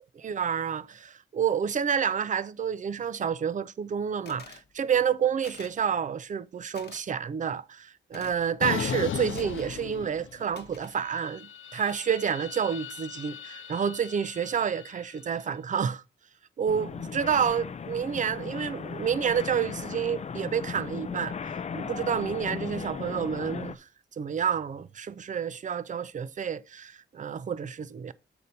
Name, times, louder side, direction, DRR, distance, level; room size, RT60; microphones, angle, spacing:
voice 1, 0.2-16.0 16.6-21.4 21.7-23.9 24.2-28.1, right 7 dB, 40° right, 0.4 m, -29 dB
sound 1, 4.3-4.7 5.4-5.8 6.7-7.0 8.1-8.5 9.3-9.9 10.5-11.0, left 6 dB, 55° left, 1.0 m, -48 dB
sound 2, 8.6-10.6 10.9-15.2, left 8 dB, 75° left, 0.6 m, -37 dB
sound 3, 16.7-23.8, left 6 dB, 35° left, 0.4 m, -37 dB
6.7 x 4.2 x 5.2 m
wide cardioid pair, 150°, 20 cm